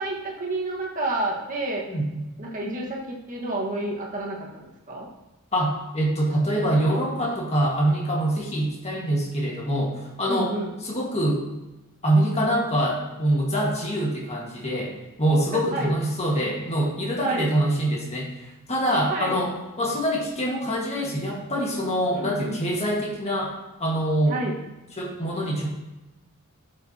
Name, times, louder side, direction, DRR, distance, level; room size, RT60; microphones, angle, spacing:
voice 1, 0.0-1.8 2.4-5.1 10.2-10.7 15.5-15.9 17.2-17.5 19.1-19.4 22.1-22.6 24.3-24.6, right 2 dB, 35° right, -2 dB, 1.6 m, -29 dB
voice 2, 1.9-2.2 5.5-10.5 10.8-11.4 12.0-14.9 15.2-18.3 18.7-23.5 23.8-24.4 25.0-25.7, right 1 dB, 30° left, -2 dB, 1.7 m, -24 dB
12.5 x 6.9 x 2.9 m, 1.0 s
head